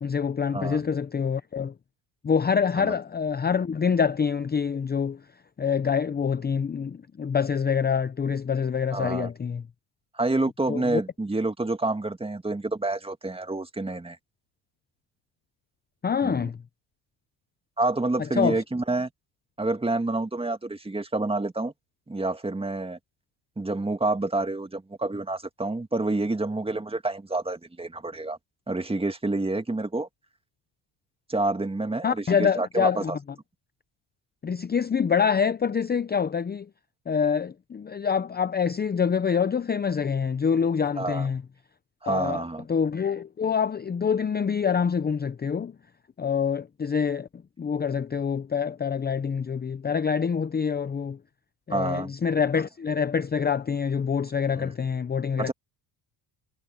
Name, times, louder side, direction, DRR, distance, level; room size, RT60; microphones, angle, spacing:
voice 1, 0.0-1.7 2.2-5.2 5.6-9.6 10.7-11.0 16.0-16.6 18.2-18.6 32.0-33.1 34.4-36.7 37.1-41.4 42.1-42.4 42.7-45.7 46.2-51.2 51.7-55.5, left 6 dB, 20° left, 0.7 m, -26 dB
voice 2, 0.5-0.9 2.8-3.0 8.9-9.3 10.1-14.2 16.2-16.5 17.8-19.1 19.6-21.7 22.1-23.0 23.6-28.4 28.7-30.1 31.3-33.2 41.0-41.3 42.0-42.7 51.7-52.1 54.6-54.7 55.4-55.5, right 2 dB, 10° right, 2.1 m, -28 dB
supercardioid pair, 90°, 46 cm